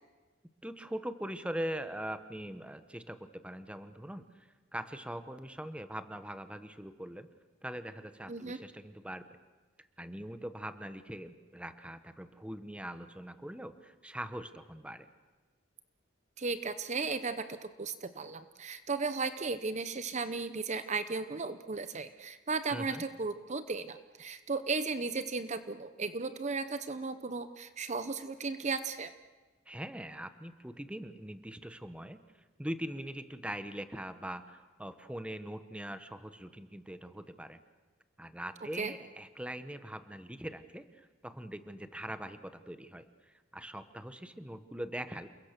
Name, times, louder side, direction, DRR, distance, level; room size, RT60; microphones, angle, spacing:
voice 1, 0.6-7.3 7.6-9.2 9.8-15.1 22.7-23.0 29.7-32.2 32.6-37.6 38.2-45.3, right 1 dB, 5° right, 10 dB, 1.0 m, -42 dB
voice 2, 8.3-8.6 16.4-29.1 38.8-38.9, right 4 dB, 35° right, 11 dB, 0.8 m, -35 dB
28.5 x 22.0 x 6.7 m, 1.3 s
head